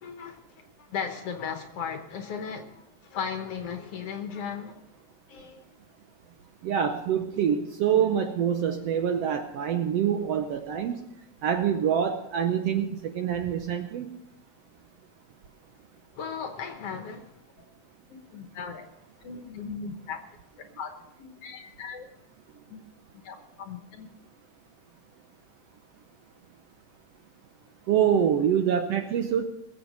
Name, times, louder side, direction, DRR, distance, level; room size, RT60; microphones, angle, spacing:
voice 1, 0.0-4.9 5.3-5.7 16.2-17.4 18.1-18.9 19.2-20.2 20.6-20.9 21.2-22.1 22.7-22.8 23.1-24.1, left 6 dB, 60° left, 1.8 m, -37 dB
voice 2, 6.6-11.0 11.4-14.1 27.9-29.4, right 8 dB, 70° right, 1.6 m, -25 dB
21.0 x 7.6 x 5.3 m
omnidirectional pair, 3.5 m